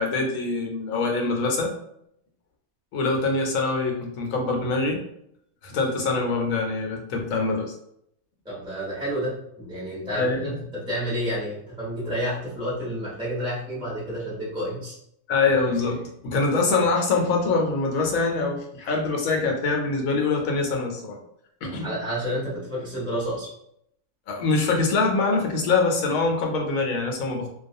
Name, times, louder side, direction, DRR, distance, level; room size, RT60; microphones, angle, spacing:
voice 1, 0.0-1.7 2.9-5.0 5.6-7.7 10.1-10.6 15.3-21.2 21.6-21.9 24.3-27.5, left 3 dB, 85° left, 2 dB, 1.0 m, -24 dB
voice 2, 8.4-10.3 10.7-14.9 21.8-23.5, equal, 5° right, -7 dB, 0.8 m, -30 dB
2.3 x 2.2 x 2.6 m, 0.74 s
omnidirectional pair, 1.4 m